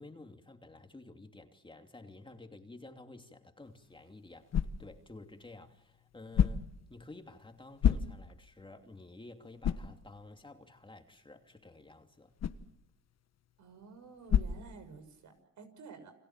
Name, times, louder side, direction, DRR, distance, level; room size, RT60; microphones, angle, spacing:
voice 1, 0.0-4.5 4.8-12.3, left 2 dB, 15° left, 2.9 m, -52 dB
sound 1, 3.6-15.4, left 8 dB, 60° left, 1.5 m, -36 dB
voice 2, 13.6-16.1, right 5 dB, 70° right, 6.3 m, -51 dB
29.5 x 25.5 x 7.5 m
cardioid pair, 90°, 30 cm